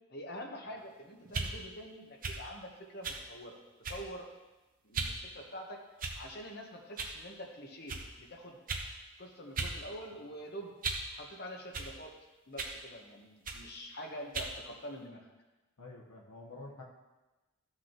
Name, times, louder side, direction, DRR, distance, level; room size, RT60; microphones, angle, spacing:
voice 1, 0.1-3.6 3.9-4.3 4.8-5.8 6.2-8.6 9.2-10.7 11.1-12.1 12.5-15.3, equal, 45° left, 1 dB, 1.1 m, -46 dB
sound 1, 1.3-1.5 2.2-2.4 3.0-3.2 3.8-4.1 4.9-5.2 6.0-6.4 7.0-7.2 7.9-8.0 8.7-8.9 9.6-9.8 10.1-11.1 11.7-11.9 12.6-12.8 13.4-13.6 14.3-14.5, right 4 dB, 40° right, 0.9 m, -37 dB
voice 2, 15.8-16.8, left 2 dB, 85° left, -2 dB, 1.2 m, -48 dB
14.5 x 6.0 x 3.0 m, 1.1 s
head